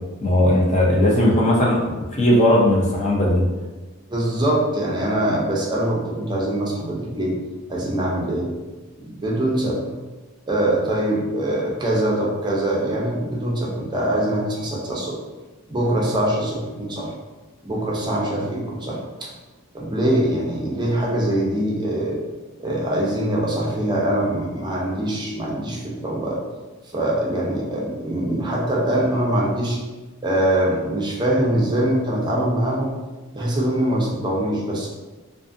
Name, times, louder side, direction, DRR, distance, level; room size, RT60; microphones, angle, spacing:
voice 1, 0.2-3.4, left 1 dB, 35° left, -3 dB, 0.5 m, -18 dB
voice 2, 4.1-7.4 7.7-8.5 9.2-9.9 10.5-15.2 15.7-17.1 17.6-19.3 19.7-22.2 22.6-26.4 26.9-29.8 30.2-32.9 33.3-34.9, right 1 dB, 20° right, -3 dB, 0.5 m, -23 dB
2.5 x 2.5 x 2.5 m, 1.2 s
head